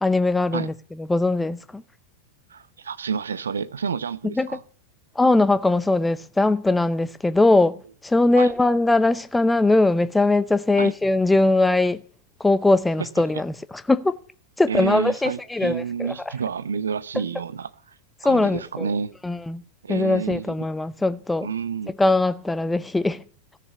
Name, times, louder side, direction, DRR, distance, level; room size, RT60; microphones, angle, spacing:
voice 1, 0.0-0.7 1.0-1.8 4.3-4.5 5.2-12.0 12.4-14.2 14.6-16.1 18.2-18.9 19.2-19.6 19.9-21.5 21.9-23.2, left 2 dB, 5° left, 0.7 m, -20 dB
voice 2, 2.5-4.6 8.4-8.5 10.8-10.9 14.7-17.7 18.2-19.1 19.8-20.7 21.4-21.9, right 6 dB, 70° right, 0.8 m, -29 dB
16.5 x 6.8 x 9.7 m
figure-of-eight pair, 90°, 0 cm